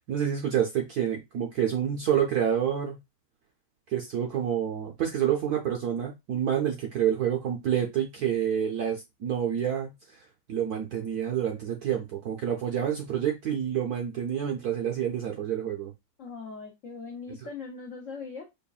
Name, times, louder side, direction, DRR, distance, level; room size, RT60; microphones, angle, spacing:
voice 1, 0.1-3.0 3.9-9.9 10.5-15.9, right 9 dB, 70° right, 0.9 m, -28 dB
voice 2, 16.2-18.5, left 4 dB, 75° left, 0.7 m, -40 dB
5.5 x 2.4 x 2.3 m
omnidirectional pair, 2.3 m